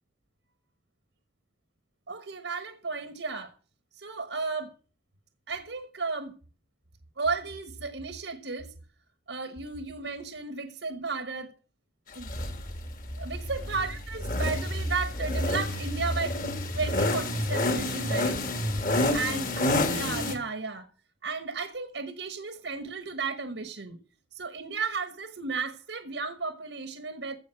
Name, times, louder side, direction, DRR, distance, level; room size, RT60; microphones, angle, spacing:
voice 1, 2.1-3.5 4.0-4.7 5.5-6.4 7.2-8.7 9.3-11.5 12.1-12.3 12.6-12.7 13.2-18.4 19.1-20.9 21.2-24.0 24.3-27.4, right 4 dB, 75° right, 1.3 m, -34 dB
sound 1, 12.2-20.4, left 1 dB, 45° left, 2.1 m, -29 dB
15.5 x 5.3 x 7.7 m
head